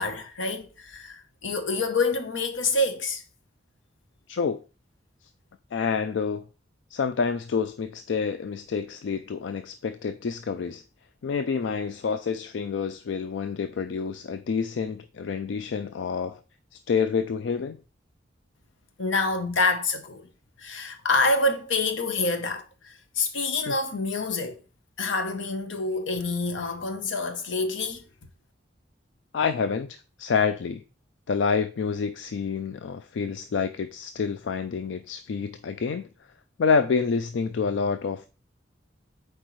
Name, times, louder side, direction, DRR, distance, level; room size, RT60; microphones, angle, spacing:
voice 1, 0.0-3.2 19.0-20.3 20.6-24.6 25.0-28.0, left 3 dB, 90° left, 0.9 m, -27 dB
voice 2, 4.3-4.6 5.7-6.5 6.9-10.8 11.2-16.4 16.9-17.8 23.7-23.8 29.3-30.8 31.3-36.1 36.6-38.3, left 5 dB, 75° left, 0.4 m, -28 dB
7.7 x 4.5 x 3.1 m
head